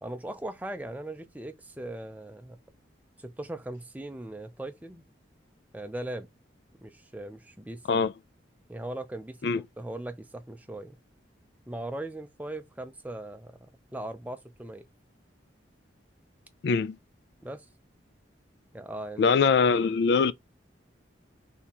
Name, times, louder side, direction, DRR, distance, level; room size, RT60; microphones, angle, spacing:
voice 1, 0.0-2.6 3.2-5.0 5.7-6.3 6.8-8.0 8.7-11.0 11.7-14.8 17.4-17.6 18.7-19.3, right 1 dB, 10° right, 0.5 m, -39 dB
voice 2, 16.6-17.0 19.2-20.3, left 5 dB, 60° left, 0.3 m, -22 dB
4.2 x 3.5 x 2.9 m
head